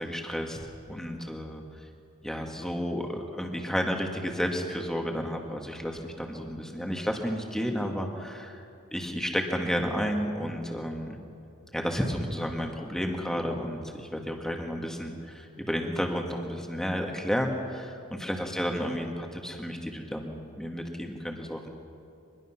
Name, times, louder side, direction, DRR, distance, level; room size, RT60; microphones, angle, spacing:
voice 1, 0.0-1.6 2.2-8.6 8.9-11.2 11.7-21.7, equal, ahead, 1 dB, 2.0 m, -32 dB
25.0 x 21.5 x 6.0 m, 2.5 s
head